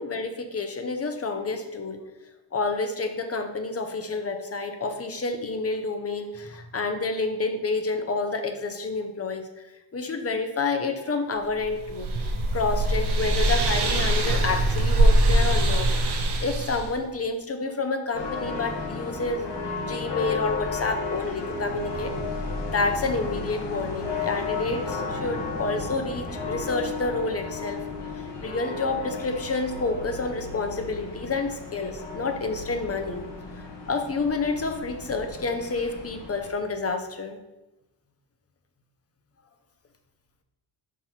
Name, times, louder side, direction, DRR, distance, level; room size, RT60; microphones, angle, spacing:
voice 1, 0.0-2.0 2.5-9.5 9.9-12.1 12.5-15.9 16.4-19.4 19.8-22.1 22.6-27.8 28.4-33.2 33.9-37.4, left 3 dB, 30° left, 6 dB, 0.8 m, -29 dB
sound 1, 11.6-16.9, right 1 dB, 60° right, 1.0 m, -22 dB
sound 2, 18.1-36.5, left 3 dB, 60° left, 1.6 m, -34 dB
6.1 x 4.3 x 4.4 m, 0.99 s
cardioid pair, 110°, 46 cm